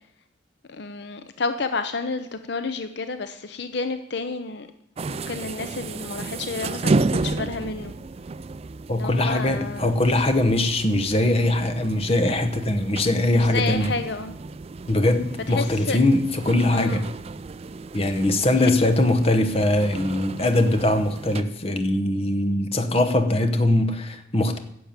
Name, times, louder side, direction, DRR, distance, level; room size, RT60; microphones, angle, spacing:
voice 1, 0.7-4.7 5.1-7.9 8.9-9.9 13.3-14.3 15.5-16.0 16.7-17.1 18.6-18.7, left 4 dB, 60° left, 9 dB, 0.6 m, -30 dB
sound 1, 5.0-21.4, right 3 dB, 30° right, 0.4 m, -32 dB
voice 2, 8.9-14.0 14.9-17.1 17.9-24.6, left 1 dB, 30° left, 7 dB, 1.0 m, -21 dB
11.0 x 7.0 x 8.8 m, 0.75 s
head